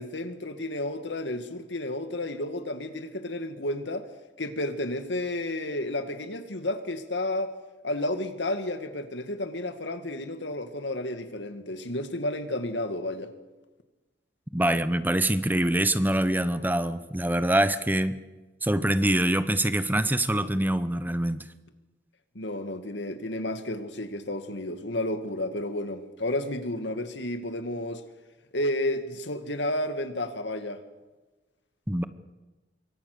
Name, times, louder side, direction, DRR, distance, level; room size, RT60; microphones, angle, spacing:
voice 1, 0.0-4.1 4.4-7.5 7.8-13.3 22.3-28.0 28.5-30.8, left 1 dB, 90° left, 2.3 m, -31 dB
voice 2, 14.5-18.2 18.6-21.5 31.9-32.0, right 1 dB, 10° right, 1.0 m, -24 dB
26.5 x 23.5 x 6.9 m
head